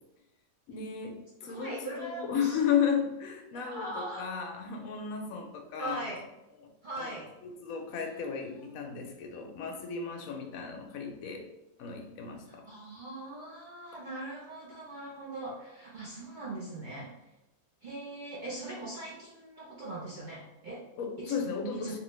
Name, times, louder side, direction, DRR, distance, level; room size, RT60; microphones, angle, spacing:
voice 1, 0.7-6.0 7.0-7.2 7.4-11.5 11.8-12.7 21.0-22.0, left 7 dB, 70° left, 3 dB, 1.0 m, -34 dB
voice 2, 1.4-2.6 3.5-4.3 5.8-6.3 6.8-7.3 8.3-8.8 12.4-17.3 17.8-20.8 21.2-21.4 21.7-22.0, right 1 dB, 55° right, -6 dB, 0.5 m, -41 dB
3.0 x 2.7 x 3.1 m, 0.91 s
omnidirectional pair, 1.6 m